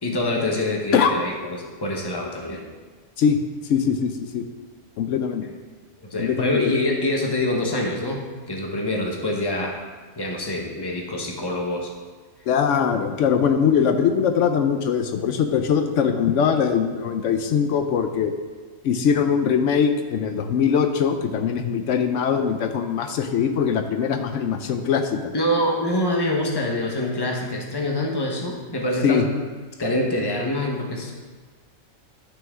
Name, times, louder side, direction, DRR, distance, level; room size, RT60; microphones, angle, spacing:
voice 1, 0.0-2.7 6.0-9.8 10.2-11.9 25.3-29.3 29.8-31.1, left 1 dB, 20° left, 0 dB, 1.1 m, -25 dB
voice 2, 3.7-4.4 5.0-5.5 6.2-6.7 12.5-18.3 18.8-25.3 29.0-29.2, left 7 dB, 80° left, 6 dB, 0.9 m, -21 dB
11.5 x 6.1 x 3.6 m, 1.4 s
omnidirectional pair, 1.3 m